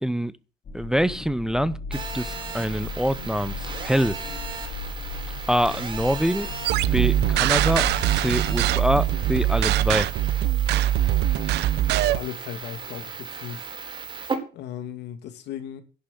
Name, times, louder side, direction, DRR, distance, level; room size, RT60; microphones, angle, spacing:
voice 1, 0.0-0.3 0.7-4.2 5.5-6.5 6.9-10.1, equal, 5° right, 0.7 m, -25 dB
sound 1, 0.7-10.0, left 5 dB, 50° left, 4.0 m, -37 dB
Telephone, 1.9-14.3, right 4 dB, 30° right, 4.1 m, -36 dB
sound 2, 6.6-12.2, right 13 dB, 80° right, 0.9 m, -22 dB
voice 2, 11.9-13.7 14.5-15.8, left 10 dB, 85° left, 2.6 m, -37 dB
11.0 x 6.9 x 9.4 m
cardioid pair, 110°, 17 cm